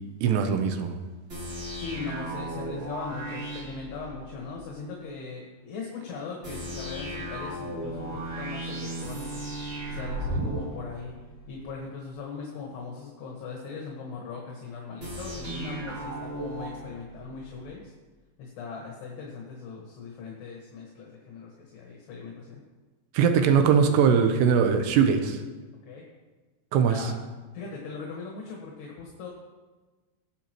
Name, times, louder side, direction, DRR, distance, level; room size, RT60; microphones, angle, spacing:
voice 1, 0.2-1.0 23.1-25.4 26.7-27.1, right 6 dB, 80° right, 6 dB, 2.9 m, -21 dB
sound 1, 1.3-4.6 6.4-11.6 15.0-17.6, right 1 dB, 30° right, 3.3 m, -36 dB
voice 2, 1.7-9.4 9.9-11.1 11.5-17.9 18.4-22.6 25.8-26.0 26.8-27.2 27.5-29.3, left 5 dB, 70° left, -2 dB, 3.4 m, -39 dB
20.0 x 7.8 x 3.0 m, 1.3 s
omnidirectional pair, 5.0 m